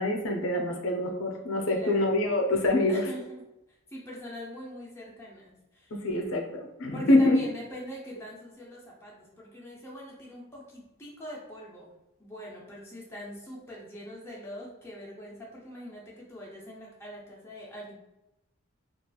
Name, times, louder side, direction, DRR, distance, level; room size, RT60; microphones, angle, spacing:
voice 1, 0.0-3.1 5.9-7.4, left 1 dB, 70° left, 2 dB, 0.4 m, -25 dB
voice 2, 1.7-2.2 2.9-3.4 3.9-6.0 6.9-11.9 12.2-17.9, equal, 10° left, -4 dB, 0.5 m, -43 dB
2.8 x 2.3 x 2.3 m, 0.91 s
head